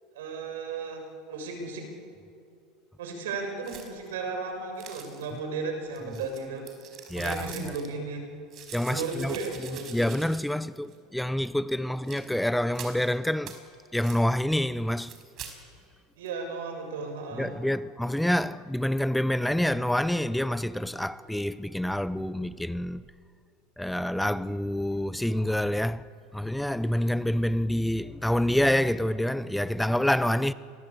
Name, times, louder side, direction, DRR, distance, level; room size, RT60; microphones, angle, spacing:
voice 1, 0.1-1.9 3.0-6.6 7.1-8.2 8.9-10.1 16.2-17.5, right 4 dB, 90° right, 6.5 m, -35 dB
sound 1, 3.6-4.1 4.8-5.4 5.9-7.9 8.5-10.6 10.9-11.0 12.0-12.3 12.7-13.0 13.4-13.6 14.0-14.2 14.9-15.5, right 8 dB, 45° right, 4.8 m, -45 dB
voice 2, 7.1-7.7 8.7-13.6 13.9-15.2 17.3-23.0 23.8-26.1 26.3-30.5, left 1 dB, 5° left, 0.6 m, -27 dB
29.0 x 22.0 x 8.5 m
supercardioid pair, 120°, 0 cm